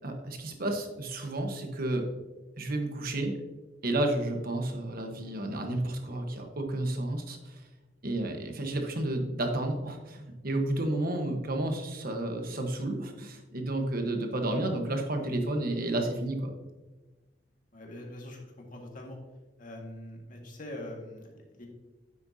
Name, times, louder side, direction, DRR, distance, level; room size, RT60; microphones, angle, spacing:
voice 1, 0.0-2.0 2.6-3.3 3.8-7.5 8.0-16.5, right 1 dB, 55° right, 4 dB, 1.2 m, -31 dB
voice 2, 17.7-19.2 19.6-21.7, left 1 dB, 50° left, 0 dB, 1.8 m, -43 dB
9.5 x 7.8 x 2.7 m, 1.2 s
head